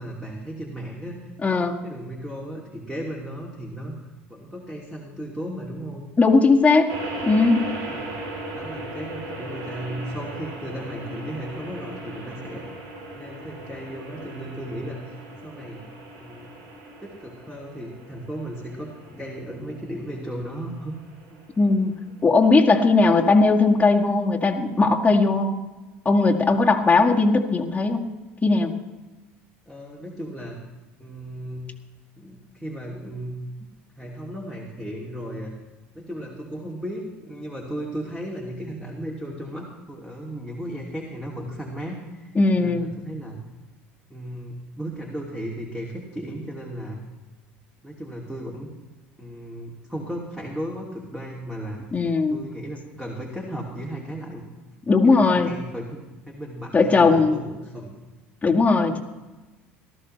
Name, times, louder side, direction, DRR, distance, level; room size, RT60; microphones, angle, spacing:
voice 1, 0.0-1.3 1.6-6.1 7.9-8.1 8.5-12.7 13.1-15.8 16.2-16.5 17.0-21.0 21.3-21.4 29.7-30.6 31.0-31.6 32.2-33.4 33.9-35.5 35.9-43.4 44.1-47.0 47.8-48.7 49.2-51.8 52.3-54.4 55.0-56.0 56.3-58.0 58.4-58.7, right 1 dB, 5° right, -2 dB, 2.7 m, -35 dB
voice 2, 1.4-1.7 6.2-6.9 7.2-7.6 21.6-21.9 22.2-25.5 26.1-28.0 28.4-28.7 42.4-42.9 51.9-52.4 54.9-55.5 56.7-57.4 58.4-59.0, left 3 dB, 20° left, 0 dB, 1.9 m, -18 dB
sound 1, 6.9-22.2, right 1 dB, 70° right, 3.6 m, -38 dB
18.0 x 13.5 x 3.3 m, 1.2 s
hypercardioid pair, 75°, 6 cm